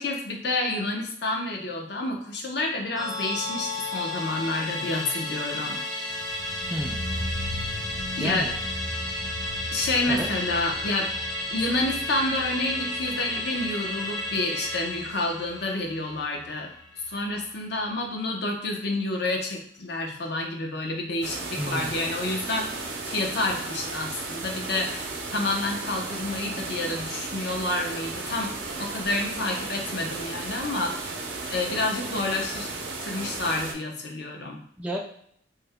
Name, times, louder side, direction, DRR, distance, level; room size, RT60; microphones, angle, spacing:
voice 1, 0.0-5.8 8.2-8.5 9.7-11.1 11.5-16.7 17.1-31.2 31.5-32.7 33.0-34.6, left 2 dB, 65° left, 1 dB, 0.7 m, -29 dB
Musical instrument, 3.0-17.6 18.0-18.1, left 1 dB, 20° left, 0.7 m, -33 dB
sound 1, 6.1-17.1 17.4-17.5, left 1 dB, 40° left, 1.0 m, -39 dB
voice 2, 6.7-7.0 8.2-8.6 10.1-10.3 21.6-22.0 34.8-35.0, equal, 5° right, -2 dB, 0.3 m, -31 dB
sound 2, 21.2-33.7, right 3 dB, 80° right, 0.6 m, -34 dB
3.2 x 2.1 x 3.4 m, 0.65 s
head